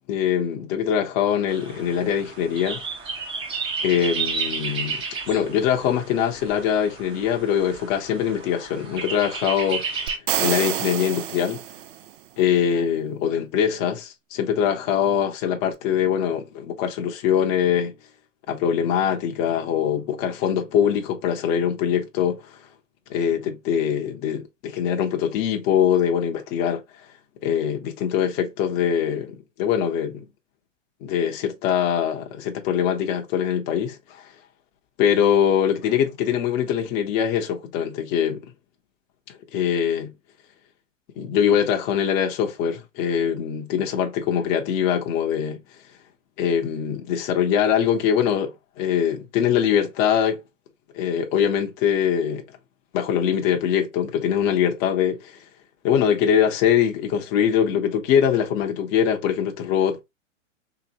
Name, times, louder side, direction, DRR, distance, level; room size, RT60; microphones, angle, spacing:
voice 1, 0.1-2.8 3.8-5.0 5.3-9.8 10.4-11.6 12.4-17.9 18.5-22.4 23.1-26.8 27.4-30.2 31.0-34.0 35.0-38.4 39.5-40.1 41.2-45.6 46.4-50.4 50.9-52.4 52.9-55.3 55.8-60.0, left 8 dB, 25° left, 0.7 m, -23 dB
sound 1, 1.5-10.2, right 5 dB, 15° right, 0.6 m, -32 dB
sound 2, 10.1-12.1, right 12 dB, 75° right, 0.5 m, -27 dB
3.3 x 2.9 x 2.7 m
hypercardioid pair, 140°, 38 cm